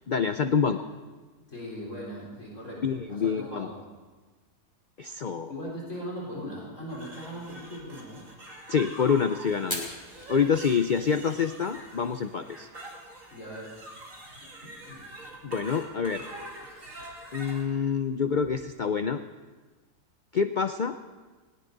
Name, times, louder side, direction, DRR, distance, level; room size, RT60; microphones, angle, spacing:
voice 1, 0.1-0.9 2.8-3.7 5.0-5.5 8.7-9.9 10.3-12.7 15.4-16.2 17.3-19.2 20.3-21.0, left 6 dB, 75° left, 9 dB, 0.4 m, -27 dB
voice 2, 1.5-3.8 5.5-8.3 13.3-13.8 14.8-15.0, equal, 50° left, -5 dB, 4.3 m, -39 dB
sound 1, 6.9-17.6, right 1 dB, 55° right, 2.7 m, -45 dB
Fire, 9.6-18.8, left 1 dB, 15° left, 2.6 m, -46 dB
19.0 x 18.0 x 4.0 m, 1.3 s
omnidirectional pair, 1.6 m